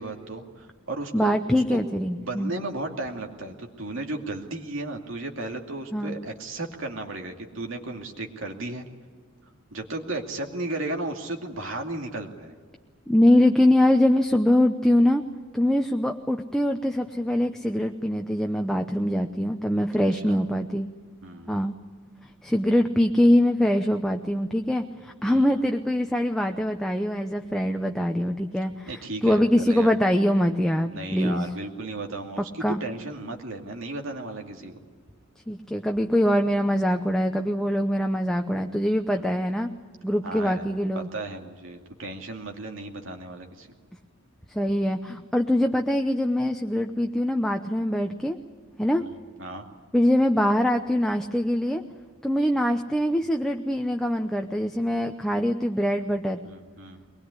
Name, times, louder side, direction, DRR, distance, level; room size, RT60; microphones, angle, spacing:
voice 1, 0.0-1.4 1.7-1.9 2.2-8.9 9.7-12.6 20.1-20.4 21.2-21.5 25.3-25.5 28.9-29.9 30.9-34.8 39.1-39.3 40.2-43.7 49.0-49.1 49.4-49.6 56.4-57.0, right 2 dB, 70° right, 3 dB, 2.5 m, -35 dB
voice 2, 1.1-2.5 5.9-6.1 13.1-15.2 15.5-20.9 21.5-21.7 22.4-31.5 32.6-32.8 35.5-39.7 40.0-41.1 44.5-48.4 48.8-49.0 49.9-51.8 52.2-56.4, left 1 dB, ahead, 4 dB, 0.8 m, -23 dB
22.5 x 20.0 x 9.8 m, 1.5 s
head